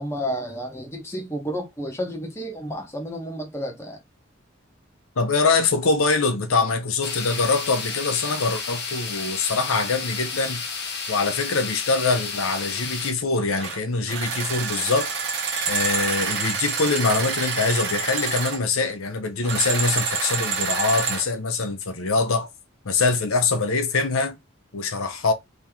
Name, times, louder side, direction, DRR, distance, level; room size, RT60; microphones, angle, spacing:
voice 1, 0.0-4.0, equal, 10° left, 0.9 m, -31 dB
voice 2, 5.2-10.6 11.1-15.1 15.7-22.5 22.8-24.4 24.7-25.3, left 3 dB, 75° left, 0.7 m, -23 dB
sound 1, 7.0-13.1, left 5 dB, 50° left, 0.9 m, -32 dB
sound 2, 13.6-13.8 14.1-18.6 19.4-21.3, right 5 dB, 50° right, 1.2 m, -27 dB
3.1 x 2.9 x 3.5 m
head